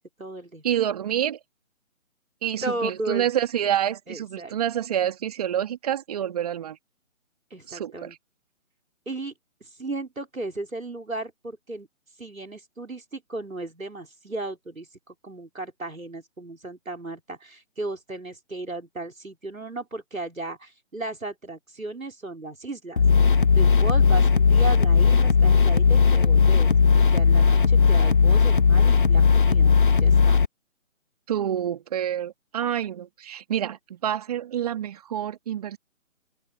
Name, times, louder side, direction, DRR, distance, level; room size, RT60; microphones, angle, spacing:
voice 1, 0.0-0.6 2.6-3.3 4.1-4.6 7.5-8.1 9.1-9.3 9.6-11.9 12.2-23.0 23.5-29.7 30.0-30.4, right 2 dB, 80° right, 4.2 m, -35 dB
voice 2, 0.6-1.4 2.4-6.8 7.7-8.2 31.3-35.8, right 10 dB, 30° right, 2.5 m, -27 dB
sound 1, 23.0-30.5, left 5 dB, 40° left, 0.5 m, -17 dB
open air
figure-of-eight pair, 145°, 40 cm